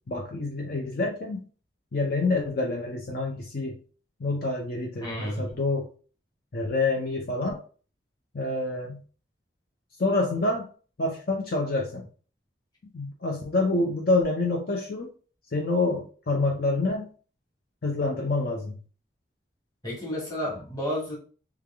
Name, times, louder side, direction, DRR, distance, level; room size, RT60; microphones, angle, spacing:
voice 1, 0.1-1.4 1.9-3.8 4.2-5.9 6.5-7.6 8.3-9.0 10.0-10.7 11.0-12.0 12.9-15.1 15.5-17.1 17.8-18.7, left 2 dB, 55° left, 0.6 m, -27 dB
voice 2, 5.0-5.5 19.8-21.1, equal, 20° left, 1.5 m, -31 dB
3.4 x 2.3 x 3.4 m
head